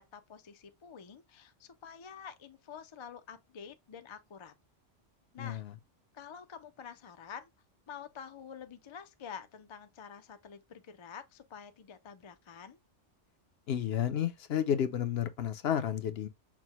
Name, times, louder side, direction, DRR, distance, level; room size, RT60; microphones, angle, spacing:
voice 1, 0.0-4.5 5.3-5.6 6.1-7.5 7.9-12.8, left 7 dB, 50° left, 0.3 m, -48 dB
voice 2, 5.4-5.7 13.7-16.3, left 9 dB, 65° left, 0.8 m, -31 dB
6.0 x 2.1 x 2.9 m
omnidirectional pair, 1.2 m